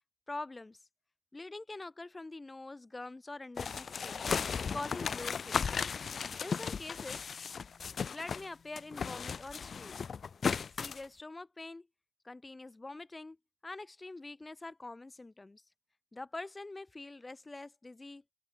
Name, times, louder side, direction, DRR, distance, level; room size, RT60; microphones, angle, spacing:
voice 1, 0.3-0.8 1.3-4.3 4.7-5.8 6.4-7.3 8.1-10.0 10.8-11.9 12.2-13.4 13.6-15.6 16.1-18.2, left 2 dB, 20° left, 1.2 m, -45 dB
sound 1, 3.6-8.5 8.8-11.0, left 6 dB, 45° left, 0.4 m, -36 dB
open air
cardioid pair, 90°, 0 cm